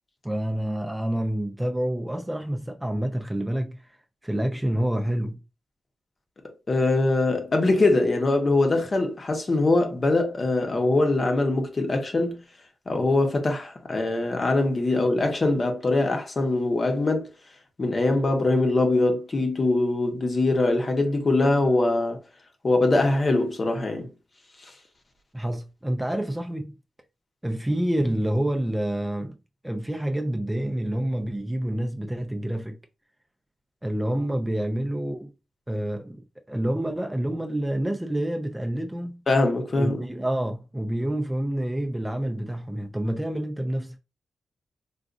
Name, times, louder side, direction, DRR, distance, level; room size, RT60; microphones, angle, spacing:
voice 1, 0.2-3.8 4.2-5.4 25.3-26.7 27.4-29.4 29.6-32.8 33.8-35.3 35.7-39.2 39.7-44.0, right 1 dB, 10° right, 0.4 m, -28 dB
voice 2, 6.7-12.4 12.9-17.3 17.8-22.2 22.6-24.1 39.3-40.0, left 2 dB, 40° left, 0.9 m, -22 dB
3.9 x 2.4 x 2.4 m
cardioid pair, 75°, 0 cm